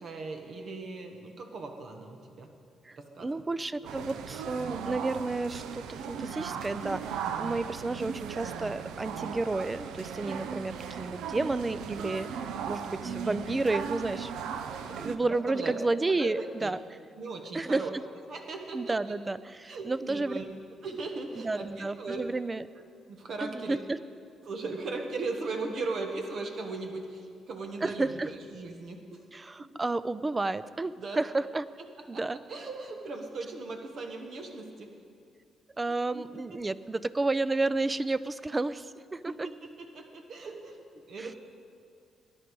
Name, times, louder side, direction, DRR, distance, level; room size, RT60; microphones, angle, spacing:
voice 1, 0.0-2.5 3.0-3.3 4.0-4.7 13.0-13.4 15.2-15.7 16.2-16.7 17.2-17.9 18.3-19.0 19.7-20.5 20.8-22.2 23.1-23.8 24.4-29.2 31.0-31.2 32.1-32.2 32.5-34.9 36.1-36.2 36.5-36.6 39.3-41.4, right 3 dB, 60° right, 4 dB, 1.2 m, -38 dB
voice 2, 2.9-14.3 15.0-16.8 17.5-18.0 18.7-20.4 21.3-22.6 23.4-24.0 27.8-28.3 29.3-31.7 32.1-32.4 35.8-39.5 41.2-41.3, right 2 dB, 20° right, 15 dB, 0.4 m, -31 dB
sound 1, 3.8-15.2, right 7 dB, 85° right, 0.6 m, -37 dB
18.0 x 10.0 x 4.7 m, 2.3 s
cardioid pair, 90°, 0 cm